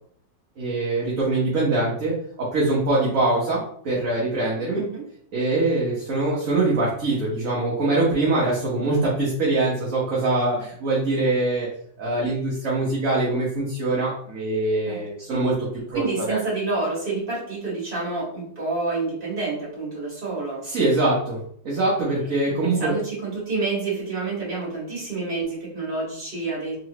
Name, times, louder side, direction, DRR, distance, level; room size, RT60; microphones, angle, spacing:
voice 1, 0.6-4.8 5.3-11.7 12.0-15.5 15.9-16.4 20.7-21.4 21.6-22.9, right 2 dB, 50° right, -5 dB, 1.2 m, -23 dB
voice 2, 15.9-20.6 22.2-26.7, right 3 dB, 30° right, -6 dB, 1.8 m, -28 dB
3.8 x 3.1 x 3.0 m, 0.64 s
omnidirectional pair, 2.1 m